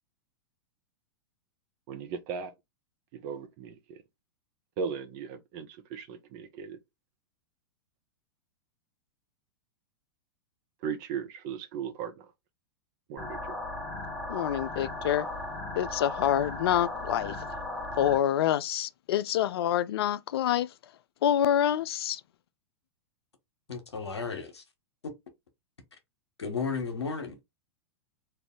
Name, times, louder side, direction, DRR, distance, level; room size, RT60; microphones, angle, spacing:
voice 1, 1.9-2.5 3.1-4.0 4.8-6.8 10.8-12.3 13.1-13.6, right 6 dB, 45° right, 0.8 m, -37 dB
sound 1, 13.2-18.2, left 2 dB, 10° left, 1.2 m, -37 dB
voice 2, 14.3-15.3 15.8-17.4 18.0-20.7 21.2-22.2, left 11 dB, 65° left, 0.4 m, -27 dB
voice 3, 23.7-24.6 26.4-27.4, left 5 dB, 85° left, 1.2 m, -33 dB
3.3 x 2.5 x 3.7 m
hypercardioid pair, 100°, 14 cm